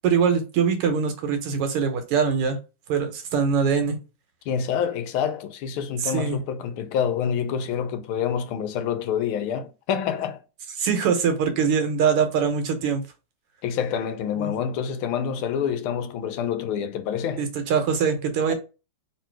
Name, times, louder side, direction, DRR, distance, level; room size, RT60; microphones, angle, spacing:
voice 1, 0.0-2.6 2.9-4.0 6.0-6.4 10.8-13.0 14.4-14.5 17.4-18.5, right 6 dB, 90° right, 1.9 m, -23 dB
voice 2, 4.5-10.4 13.6-17.4 18.5-18.6, left 8 dB, 75° left, 1.5 m, -27 dB
3.7 x 3.0 x 4.6 m
omnidirectional pair, 2.4 m